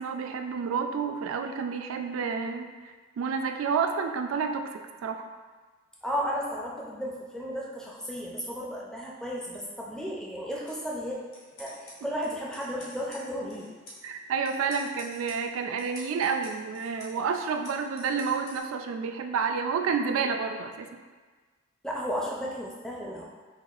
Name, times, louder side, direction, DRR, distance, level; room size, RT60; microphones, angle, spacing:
voice 1, 0.0-5.3 14.0-20.9, right 5 dB, 75° right, 5 dB, 0.3 m, -30 dB
voice 2, 6.0-11.1 11.6-13.7 21.8-23.2, equal, 5° left, -4 dB, 0.4 m, -34 dB
sound 1, 10.5-18.6, left 1 dB, 65° left, 1.1 m, -50 dB
5.7 x 2.4 x 2.4 m, 1.4 s
head